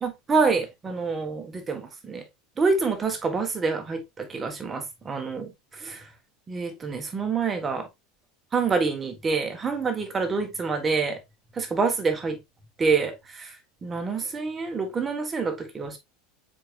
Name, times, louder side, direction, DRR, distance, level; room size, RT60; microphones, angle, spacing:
voice 1, 0.0-2.2 2.6-6.1 6.5-7.9 8.5-11.2 11.5-12.4 12.8-13.6 13.8-16.0, right 4 dB, 25° right, 1.4 m, -27 dB
4.6 x 4.4 x 2.5 m
figure-of-eight pair, 75°, 0 cm